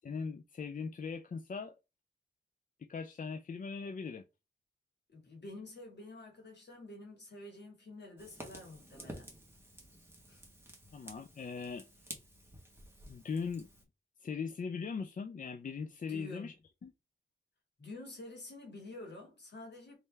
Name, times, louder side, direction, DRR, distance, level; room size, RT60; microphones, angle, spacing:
voice 1, 0.0-1.7 2.9-4.2 10.9-11.8 13.1-13.7 14.2-16.5 16.8-16.9, left 5 dB, 45° left, 0.4 m, -39 dB
voice 2, 5.1-9.3 10.3-10.4 16.1-16.5 17.8-20.0, left 2 dB, 65° left, 2.0 m, -49 dB
Fire, 8.2-13.8, right 1 dB, 10° right, 1.3 m, -51 dB
3.3 x 3.2 x 3.3 m
wide cardioid pair, 65°, 19 cm